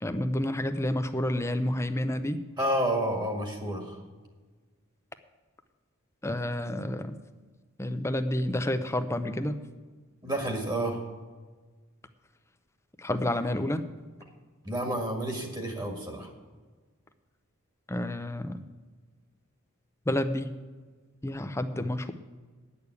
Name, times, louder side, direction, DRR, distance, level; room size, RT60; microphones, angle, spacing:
voice 1, 0.0-2.4 6.2-7.1 7.8-9.6 13.0-13.8 17.9-18.6 20.1-20.5 21.2-22.1, left 1 dB, 15° left, 9 dB, 0.6 m, -29 dB
voice 2, 2.6-4.0 10.2-11.0 14.6-16.3, right 1 dB, 20° right, 3 dB, 1.8 m, -30 dB
10.0 x 6.9 x 8.2 m, 1.4 s
head